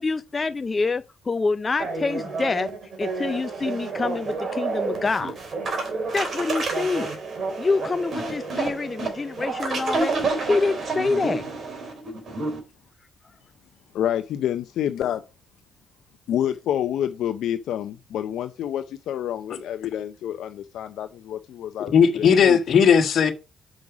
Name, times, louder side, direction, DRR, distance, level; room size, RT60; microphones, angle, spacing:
voice 1, 0.0-2.7 3.0-5.4 6.1-7.1 7.6-10.1 10.4-11.5, left 3 dB, 30° left, 0.4 m, -26 dB
sound 1, 1.8-12.6, right 3 dB, 45° right, 2.9 m, -29 dB
voice 2, 13.9-15.2 16.3-22.6, left 10 dB, 80° left, 0.5 m, -28 dB
voice 3, 21.9-23.3, left 7 dB, 60° left, 1.4 m, -17 dB
6.2 x 5.4 x 4.9 m
cardioid pair, 90°, 0 cm